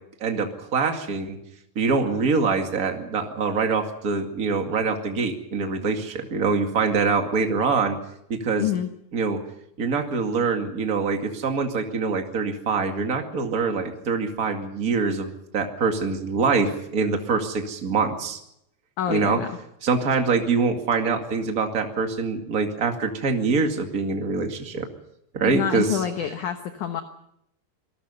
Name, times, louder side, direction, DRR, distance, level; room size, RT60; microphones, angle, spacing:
voice 1, 0.2-1.4 1.8-8.0 8.3-8.7 9.1-9.4 9.8-18.4 19.1-19.4 19.8-24.9 25.3-26.0, right 4 dB, 30° right, 4 dB, 1.7 m, -24 dB
voice 2, 8.6-8.9 19.0-19.5 25.4-27.0, left 9 dB, 65° left, 7 dB, 2.1 m, -27 dB
26.5 x 19.5 x 5.6 m, 0.76 s
omnidirectional pair, 4.8 m